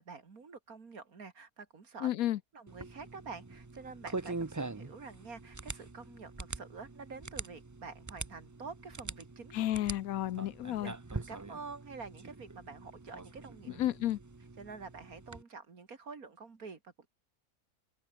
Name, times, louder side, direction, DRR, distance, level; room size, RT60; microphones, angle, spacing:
voice 1, 0.0-2.1 2.5-9.6 10.8-13.7 14.6-17.1, right 4 dB, 65° right, 2.7 m, -48 dB
voice 2, 2.0-2.4 9.5-10.9 13.7-14.2, left 13 dB, 70° left, 1.0 m, -32 dB
sound 1, 2.7-15.4, right 3 dB, 25° right, 0.4 m, -44 dB
omnidirectional pair, 1.6 m